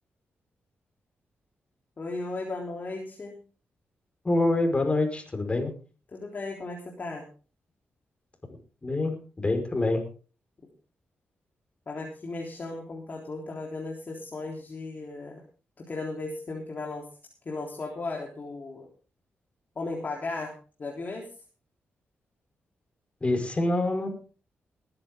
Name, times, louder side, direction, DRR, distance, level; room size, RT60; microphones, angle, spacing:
voice 1, 2.0-3.3 6.1-7.2 11.9-15.4 15.8-17.1 17.5-18.9 19.8-20.5 20.8-21.3, left 3 dB, 45° left, -1 dB, 3.7 m, -36 dB
voice 2, 4.2-5.7 8.8-10.0 23.2-24.1, left 2 dB, 25° left, 5 dB, 5.2 m, -26 dB
21.0 x 11.0 x 3.8 m, 0.37 s
cardioid pair, 90°, 4 cm